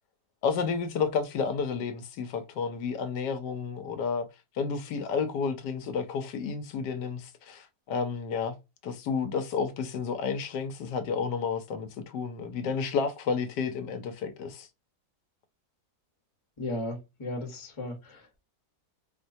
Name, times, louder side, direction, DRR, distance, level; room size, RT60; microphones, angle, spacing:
voice 1, 0.4-4.3 4.5-8.5 8.8-14.7, left 5 dB, 85° left, 1.2 m, -31 dB
voice 2, 16.6-18.4, left 1 dB, 25° left, 0.7 m, -36 dB
4.4 x 2.1 x 2.6 m
omnidirectional pair, 1.8 m